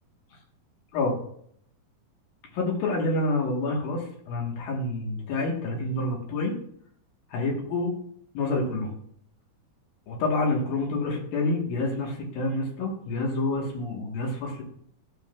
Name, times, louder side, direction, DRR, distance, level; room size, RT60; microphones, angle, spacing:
voice 1, 2.5-6.6 7.3-8.0 8.3-8.9 10.1-14.6, left 2 dB, 70° left, 0 dB, 3.1 m, -28 dB
12.0 x 7.1 x 2.3 m, 0.64 s
omnidirectional pair, 4.4 m